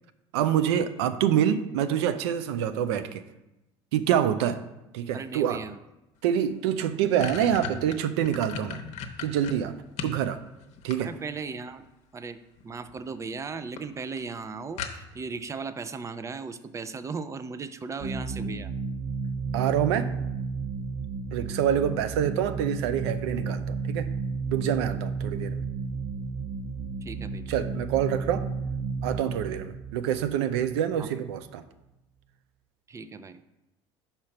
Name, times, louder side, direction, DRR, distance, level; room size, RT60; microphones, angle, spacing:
voice 1, 0.3-3.2 3.9-4.6 4.9-5.6 6.2-8.8 9.2-9.8 10.0-10.4 10.8-11.1 19.5-20.1 21.3-24.1 24.5-25.6 27.5-28.5 29.0-31.6, right 9 dB, 90° right, 12 dB, 0.5 m, -26 dB
voice 2, 5.1-5.8 11.0-11.9 12.1-18.7 27.0-27.5 31.0-31.1 32.9-33.4, right 4 dB, 20° right, 13 dB, 0.4 m, -37 dB
sound 1, 6.3-6.4 6.7-10.2 10.6-11.5 12.6-13.0 13.3-13.4 13.8-13.9 14.2-14.3 14.8-15.3, left 6 dB, 60° left, 0.8 m, -36 dB
sound 2, 18.0-31.3, right 4 dB, 65° right, 2.4 m, -33 dB
5.1 x 4.3 x 5.8 m, 0.96 s
supercardioid pair, 95°, 14 cm